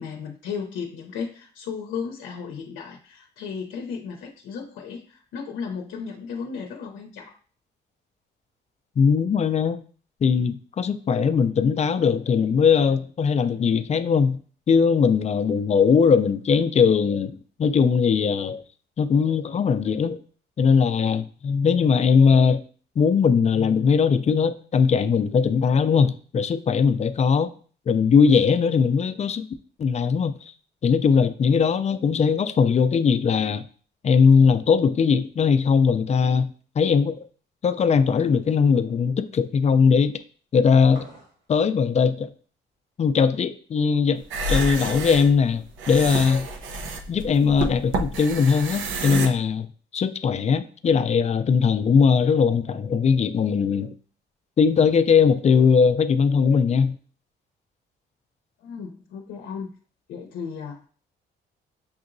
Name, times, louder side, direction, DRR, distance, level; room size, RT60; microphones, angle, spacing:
voice 1, 0.0-7.3 58.6-59.7 60.1-60.8, left 6 dB, 85° left, 0.6 m, -35 dB
voice 2, 9.0-9.8 10.2-14.4 14.7-18.6 19.0-20.2 20.6-22.6 23.0-27.5 27.9-29.5 29.8-30.5 30.8-33.6 34.0-37.2 37.6-40.1 40.5-41.1 41.5-42.3 43.0-44.2 44.5-46.5 47.1-49.7 49.9-53.9 54.6-57.0, left 6 dB, 35° left, 0.4 m, -20 dB
sound 1, 40.9-41.4 44.4-44.8, right 1 dB, 60° right, 1.9 m, -45 dB
sound 2, 44.2-49.3, right 2 dB, 80° right, 0.7 m, -29 dB
6.1 x 2.8 x 2.5 m
cardioid pair, 90°, 20 cm